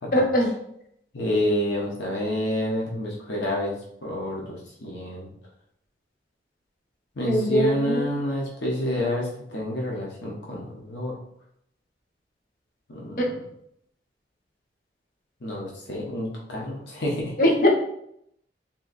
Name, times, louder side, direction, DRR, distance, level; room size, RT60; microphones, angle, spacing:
voice 1, 0.1-0.5 7.3-8.1 13.2-13.3 17.4-17.7, equal, 50° left, 0 dB, 0.9 m, -21 dB
voice 2, 1.1-3.7 4.0-5.3 7.2-11.2 12.9-13.4 15.4-17.3, left 1 dB, 80° left, -3 dB, 0.8 m, -28 dB
3.6 x 2.6 x 4.0 m, 0.73 s
head